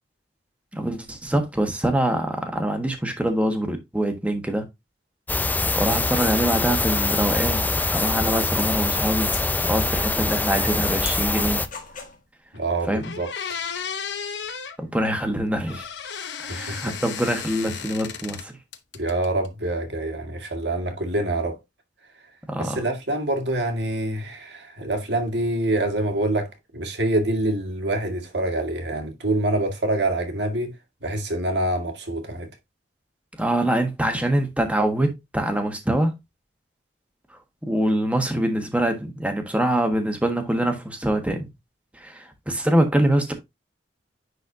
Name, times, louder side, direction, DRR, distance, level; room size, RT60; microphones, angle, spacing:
voice 1, 0.7-4.6 5.7-9.3 9.6-11.6 12.9-13.1 14.8-15.8 16.4-18.6 22.5-22.8 33.4-36.1 37.6-41.5 42.0-43.3, right 1 dB, 10° right, 1.4 m, -24 dB
sound 1, 5.3-11.7, left 3 dB, 10° left, 0.5 m, -24 dB
sound 2, 6.9-12.2, left 5 dB, 50° left, 1.8 m, -41 dB
sound 3, 12.5-12.6 13.0-14.8 15.7-18.4 18.7-19.5, left 7 dB, 70° left, 0.9 m, -34 dB
voice 2, 12.5-13.3 16.5-17.0 18.9-21.6 22.6-30.7 31.0-32.5, right 1 dB, 70° right, 1.9 m, -26 dB
10.0 x 4.2 x 2.7 m
head